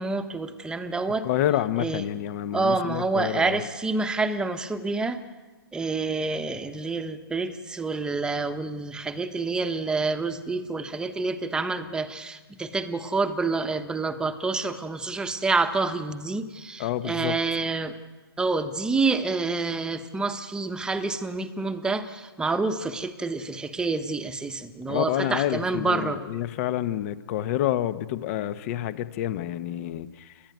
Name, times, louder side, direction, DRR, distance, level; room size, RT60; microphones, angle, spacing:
voice 1, 0.0-1.3 1.8-2.0 2.5-5.2 5.7-17.9 18.4-26.2, right 3 dB, 5° right, 9 dB, 1.1 m, -28 dB
voice 2, 1.2-3.6 16.8-17.4 24.9-30.3, left 12 dB, 35° left, 13 dB, 1.1 m, -28 dB
29.5 x 12.0 x 9.3 m, 1.3 s
hypercardioid pair, 140°, 13 cm